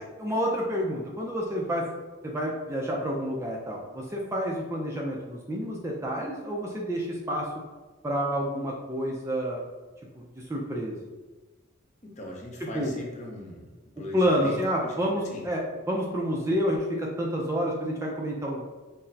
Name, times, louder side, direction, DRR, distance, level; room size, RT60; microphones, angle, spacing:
voice 1, 0.0-1.8 2.2-7.4 8.0-9.6 10.2-10.3 10.5-11.0 12.7-12.9 14.1-18.7, equal, 15° right, -2 dB, 0.4 m, -29 dB
voice 2, 12.2-13.6 14.0-14.9 15.3-15.4, left 1 dB, 35° left, -1 dB, 0.6 m, -39 dB
5.8 x 2.0 x 2.7 m, 1.3 s
head